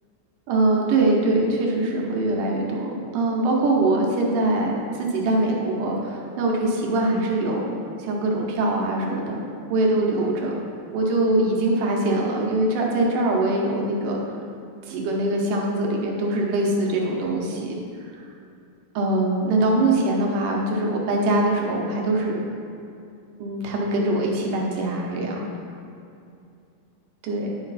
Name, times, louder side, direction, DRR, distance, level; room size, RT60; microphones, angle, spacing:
voice 1, 0.5-9.4 9.7-10.5 10.9-14.2 14.9-17.8 19.0-22.4 23.4-25.5 27.2-27.6, right 2 dB, 70° right, -1 dB, 2.4 m, -23 dB
10.5 x 5.0 x 4.1 m, 2.5 s
omnidirectional pair, 4.2 m